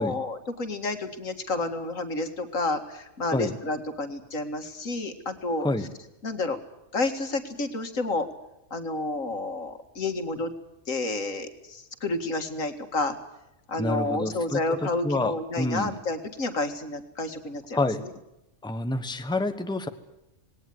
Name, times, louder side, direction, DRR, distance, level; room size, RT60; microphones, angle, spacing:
voice 1, 0.0-5.7 6.2-6.6 6.9-8.3 8.7-10.5 10.9-13.2 13.7-18.1, left 2 dB, 85° left, 7 dB, 2.4 m, -30 dB
voice 2, 13.8-16.0 17.7-18.0 18.6-19.9, left 2 dB, 5° left, 9 dB, 1.2 m, -28 dB
19.5 x 18.5 x 9.5 m, 0.88 s
omnidirectional pair, 1.4 m